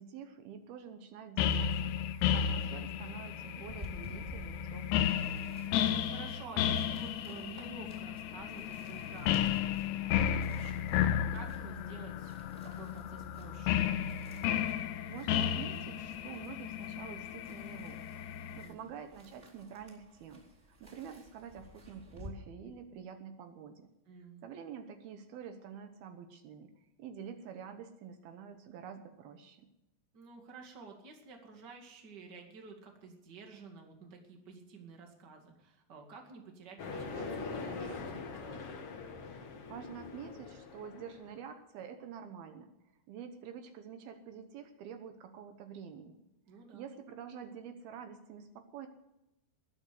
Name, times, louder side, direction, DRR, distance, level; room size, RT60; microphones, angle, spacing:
voice 1, 0.0-5.2 15.1-18.2 18.6-20.4 20.8-23.9 24.4-26.7 27.0-29.7 39.7-42.7 43.1-46.2 46.7-48.9, right 7 dB, 70° right, 7 dB, 2.6 m, -47 dB
sound 1, 1.4-18.7, left 9 dB, 80° left, 2.7 m, -33 dB
sound 2, 3.6-22.3, left 1 dB, 15° right, 3.8 m, -55 dB
voice 2, 5.7-12.3 12.6-13.9 18.5-18.9 24.1-24.4 30.1-38.8 46.5-46.9, right 4 dB, 35° right, 2 dB, 1.9 m, -51 dB
sound 3, 36.8-41.3, left 4 dB, 55° left, 1.6 m, -42 dB
20.5 x 7.1 x 7.8 m, 0.91 s
omnidirectional pair, 5.1 m